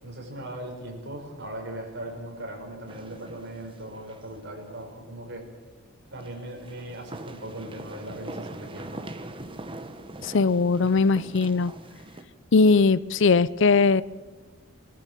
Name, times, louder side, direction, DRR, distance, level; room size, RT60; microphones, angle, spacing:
voice 1, 0.0-5.4 6.1-9.0, right 1 dB, 55° right, 1 dB, 5.3 m, -39 dB
sound 1, 2.9-4.4 4.7-4.8 6.2-12.2, right 1 dB, 25° right, 1.2 m, -42 dB
voice 2, 10.2-11.7 12.5-14.0, left 4 dB, 60° left, 19 dB, 0.5 m, -20 dB
21.0 x 13.5 x 9.2 m, 1.3 s
head